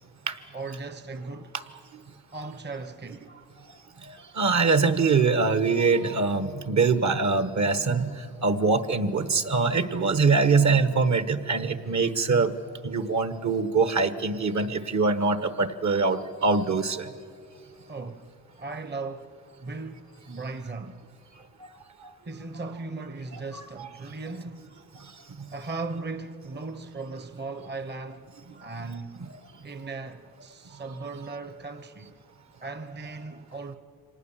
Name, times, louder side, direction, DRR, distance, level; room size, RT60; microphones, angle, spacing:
voice 1, 0.5-1.5 2.3-3.3 17.9-18.3 18.6-19.3 19.6-21.0 22.2-24.7 25.5-28.3 28.6-29.2 29.6-32.1 32.6-33.8, right 3 dB, 30° right, 1.0 m, -37 dB
voice 2, 4.0-12.5 12.8-17.1 21.6-21.7 22.0-22.1 23.3-23.4 24.9-25.0 25.4-25.5 28.5-28.6, right 4 dB, 50° right, 1.4 m, -24 dB
25.5 x 19.0 x 7.4 m
cardioid pair, 80°, 37 cm